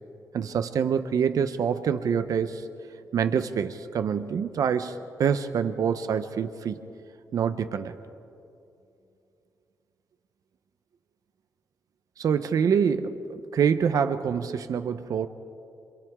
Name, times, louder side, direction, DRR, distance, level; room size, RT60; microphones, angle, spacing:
voice 1, 0.3-2.6 3.1-6.8 7.3-7.9 12.2-13.2 13.5-15.3, right 7 dB, 65° right, 10 dB, 0.8 m, -26 dB
29.5 x 28.0 x 3.7 m, 2.6 s
wide cardioid pair, 145°, 6 cm